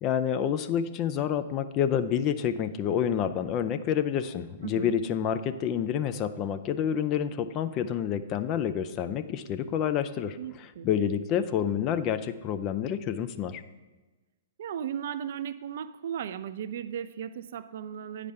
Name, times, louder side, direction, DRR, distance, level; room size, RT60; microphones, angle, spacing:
voice 1, 0.0-10.4 10.8-13.6, left 9 dB, 30° left, 10 dB, 0.5 m, -28 dB
voice 2, 4.6-5.0 10.4-10.9 14.6-18.3, right 9 dB, 55° right, 12 dB, 0.4 m, -36 dB
9.3 x 5.0 x 5.5 m, 1.2 s
figure-of-eight pair, 115°, 0 cm